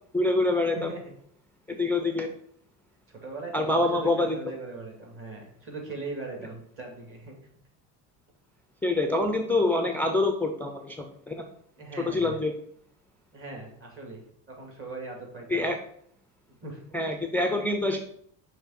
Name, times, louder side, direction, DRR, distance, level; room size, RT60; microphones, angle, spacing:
voice 1, 0.1-0.9 1.8-2.3 3.5-4.4 8.8-11.4 12.1-12.5 15.5-15.8 16.9-18.0, left 2 dB, 5° left, 4 dB, 0.4 m, -25 dB
voice 2, 3.1-7.4 11.8-12.4 13.3-15.7 16.5-17.1, right 3 dB, 35° right, 0 dB, 2.3 m, -40 dB
5.8 x 3.3 x 5.8 m, 0.65 s
cardioid pair, 115°, 38 cm